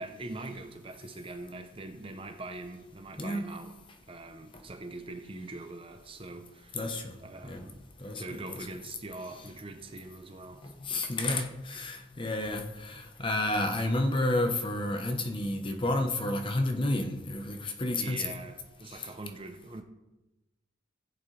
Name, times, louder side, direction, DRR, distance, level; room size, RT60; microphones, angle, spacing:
voice 1, 0.0-3.7 4.1-6.9 7.2-7.9 8.2-10.7 18.0-19.8, right 2 dB, 25° right, 0.6 m, -43 dB
voice 2, 6.7-7.1 7.4-7.6 8.0-8.6 10.6-18.3 18.9-19.1, left 1 dB, 25° left, 0.9 m, -31 dB
15.0 x 8.2 x 3.3 m
head